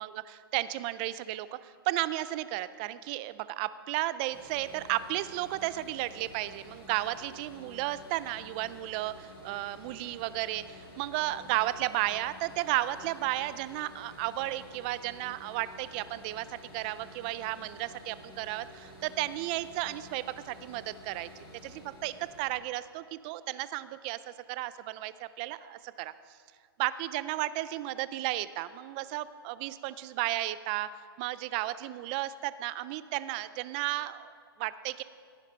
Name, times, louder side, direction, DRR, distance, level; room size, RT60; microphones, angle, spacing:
voice 1, 0.0-21.3 21.6-26.1 26.8-30.9 31.2-35.0, right 16 dB, 20° right, 15 dB, 0.3 m, -33 dB
sound 1, 4.3-22.5, left 1 dB, 25° left, 4.1 m, -51 dB
16.0 x 9.6 x 5.2 m, 2.1 s
hypercardioid pair, 160°, 13 cm